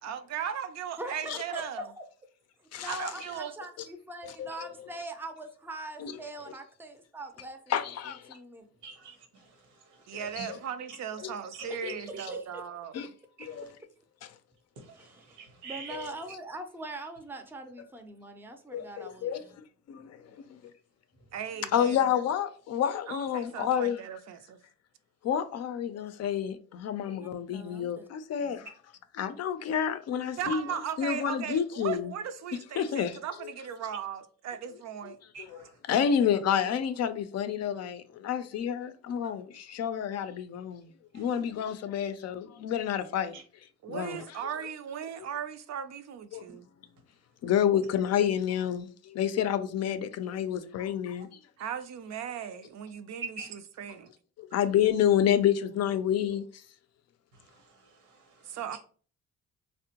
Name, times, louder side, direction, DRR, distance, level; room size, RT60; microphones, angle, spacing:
voice 1, 0.0-1.9 2.8-3.5 10.1-12.9 21.3-22.1 23.1-24.6 30.4-35.2 43.8-46.7 51.6-54.1 58.4-58.8, right 8 dB, 60° right, 0.5 m, -37 dB
voice 2, 1.0-2.0 2.8-7.6 8.1-8.6 11.7-11.8 12.1-12.6 13.6-13.7 14.9-15.4 15.6-19.6 27.2-28.1 28.4-28.7 43.9-44.2, right 1 dB, 5° right, 0.5 m, -42 dB
voice 3, 2.7-3.0 3.8-3.9 4.2-4.9 6.0-6.1 7.7-8.4 10.1-10.6 11.2-11.4 11.6-11.9 12.9-13.1 13.4-13.7 15.9-16.1 18.7-20.7 21.7-24.0 25.2-28.7 29.1-32.1 32.8-33.5 35.0-43.4 43.9-44.4 45.2-45.3 46.3-46.4 47.4-51.4 54.4-56.6, left 9 dB, 55° left, 0.4 m, -29 dB
voice 4, 8.8-9.5 9.9-10.0 10.4-10.5 11.5-11.6 12.2-12.3 14.8-16.1 35.3-35.7 41.1-41.2 43.3-43.4 53.4-53.5 57.5-57.6 58.1-58.8, right 4 dB, 85° right, 0.9 m, -46 dB
3.5 x 2.1 x 2.8 m
cardioid pair, 90°, 30 cm